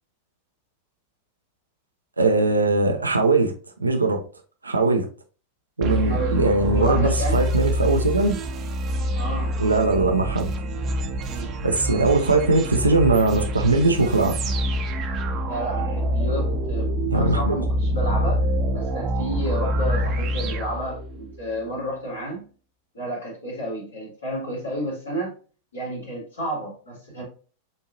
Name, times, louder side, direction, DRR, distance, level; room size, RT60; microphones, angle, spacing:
voice 1, 2.2-3.5 3.8-4.2 4.6-5.1 5.8-8.4 9.6-10.5 11.6-14.4 17.1-17.6, right 3 dB, 80° right, 0.6 m, -20 dB
sound 1, 5.8-21.4, equal, 35° right, 0.7 m, -26 dB
voice 2, 6.1-6.4 6.7-7.4 9.1-9.6 11.3-11.5 15.5-18.5 18.7-22.5 22.9-25.4 25.7-27.2, right 1 dB, 75° left, 2.2 m, -31 dB
7.0 x 2.8 x 2.6 m
figure-of-eight pair, 90°, 0 cm